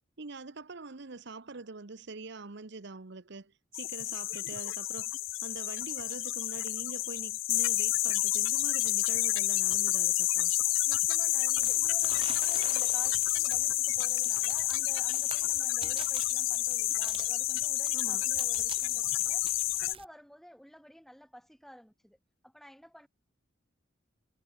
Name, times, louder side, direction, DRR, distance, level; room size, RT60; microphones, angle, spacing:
voice 1, 0.2-5.1 5.4-10.5 17.9-18.2, right 3 dB, 60° right, 1.1 m, -44 dB
sound 1, 3.7-19.9, left 17 dB, 80° left, 0.5 m, -29 dB
voice 2, 10.9-19.5 19.8-22.2 22.4-23.1, equal, ahead, 2.8 m, -53 dB
sound 2, 11.6-20.0, right 6 dB, 30° right, 3.7 m, -47 dB
head